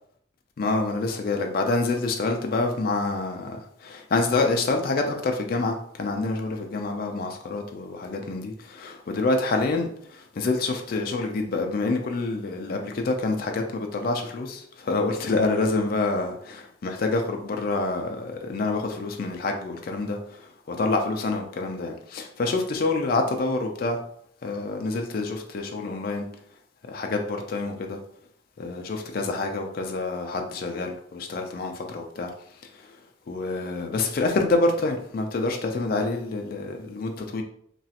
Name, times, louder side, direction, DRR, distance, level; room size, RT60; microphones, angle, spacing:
voice 1, 0.6-24.0 24.4-26.3 26.9-28.0 28.6-32.3 33.3-37.4, left 3 dB, 50° left, 3 dB, 0.4 m, -27 dB
3.0 x 2.3 x 2.8 m, 0.67 s
head